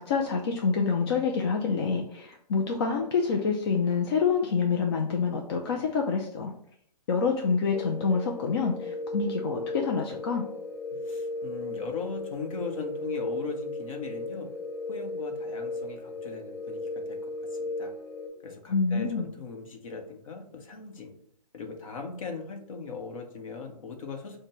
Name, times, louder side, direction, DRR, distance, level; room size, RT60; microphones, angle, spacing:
voice 1, 0.0-6.5 7.1-10.4 18.7-19.3, left 5 dB, 35° left, 2 dB, 0.5 m, -27 dB
sound 1, 7.7-18.3, left 2 dB, 15° right, 1.1 m, -36 dB
voice 2, 11.1-14.5 14.9-17.9 18.4-21.1 21.5-24.4, left 4 dB, 55° left, 3 dB, 1.0 m, -39 dB
6.4 x 2.2 x 3.0 m, 0.67 s
figure-of-eight pair, 130°, 21 cm